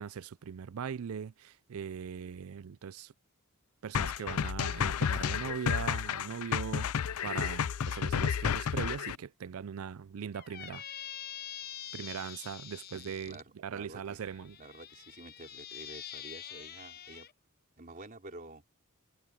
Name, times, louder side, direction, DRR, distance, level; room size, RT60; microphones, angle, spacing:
voice 1, 0.0-3.1 3.8-10.8 11.9-14.6, right 7 dB, 70° right, 0.4 m, -40 dB
sound 1, 3.9-9.2, left 7 dB, 75° left, 0.4 m, -31 dB
Squeak, 10.3-13.4 14.2-17.3, left 10 dB, 45° left, 1.0 m, -45 dB
voice 2, 12.9-14.2 14.6-17.3 17.8-18.6, right 2 dB, 40° right, 3.7 m, -50 dB
head